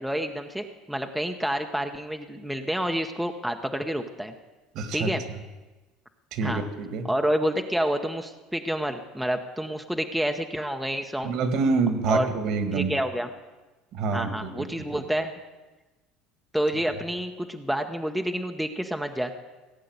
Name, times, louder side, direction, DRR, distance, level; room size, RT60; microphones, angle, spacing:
voice 1, 0.0-4.3 4.9-5.2 6.4-6.6 7.0-11.3 12.1-12.3 12.7-13.3 14.1-15.3 16.5-19.4, equal, ahead, 5 dB, 0.7 m, -28 dB
voice 2, 4.7-5.4 6.3-7.1 11.2-13.0 13.9-14.7 14.9-15.0, right 4 dB, 60° right, 9 dB, 1.7 m, -27 dB
16.5 x 8.3 x 8.0 m, 1.2 s
cardioid pair, 130°, 0 cm